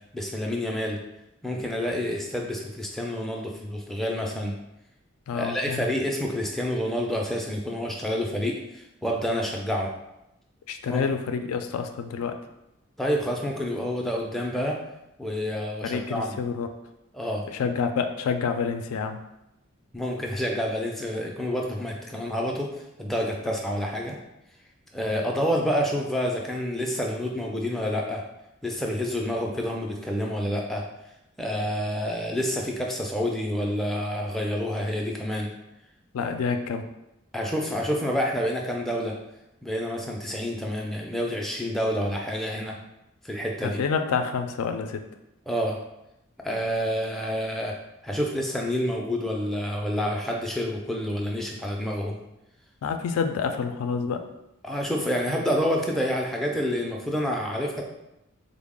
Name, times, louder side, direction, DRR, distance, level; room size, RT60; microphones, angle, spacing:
voice 1, 0.1-1.0 1.4-4.5 5.3-9.9 10.9-11.0 13.0-14.8 15.2-16.4 17.1-17.4 19.9-22.7 23.0-24.2 24.9-28.2 28.6-30.8 31.4-35.5 37.3-39.2 39.6-42.8 43.2-43.8 45.5-45.8 46.4-47.7 48.0-52.2 54.6-57.8, equal, ahead, -1 dB, 0.3 m, -28 dB
voice 2, 5.3-5.9 10.7-12.4 15.8-16.7 17.5-19.2 36.1-36.8 43.6-45.0 52.8-54.3, left 5 dB, 90° left, 6 dB, 0.3 m, -28 dB
3.8 x 2.0 x 3.6 m, 0.89 s
head